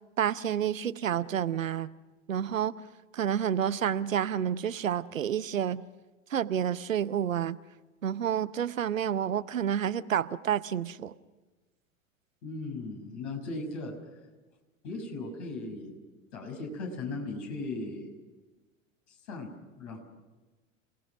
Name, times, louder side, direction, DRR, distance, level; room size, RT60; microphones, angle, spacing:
voice 1, 0.2-1.9 2.3-2.7 3.1-5.8 6.3-7.6 8.0-11.1, right 9 dB, 75° right, 16 dB, 0.8 m, -29 dB
voice 2, 12.4-13.9 14.8-16.0 16.3-18.1 19.1-19.5 19.8-20.0, left 3 dB, 60° left, 3 dB, 5.8 m, -37 dB
28.5 x 18.5 x 6.1 m, 1.2 s
figure-of-eight pair, 85°, 39 cm